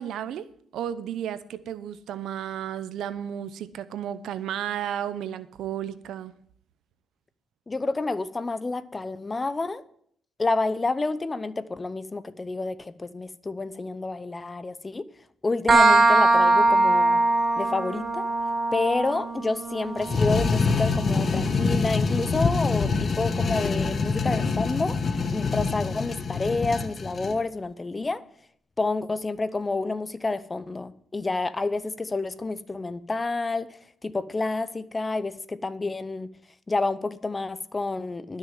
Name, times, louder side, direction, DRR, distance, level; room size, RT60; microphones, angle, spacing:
voice 1, 0.0-6.3, right 10 dB, 80° right, 0.7 m, -33 dB
voice 2, 7.7-9.8 10.4-15.1 15.4-17.2 17.6-18.3 18.7-25.0 25.3-28.2 28.8-33.7 34.0-36.3 36.7-38.4, left 3 dB, 25° left, 0.7 m, -29 dB
sound 1, 15.7-23.1, right 2 dB, 30° right, 1.3 m, -23 dB
sound 2, 20.0-27.4, left 4 dB, 40° left, 1.1 m, -25 dB
12.5 x 6.4 x 7.4 m
cardioid pair, 90°, 0 cm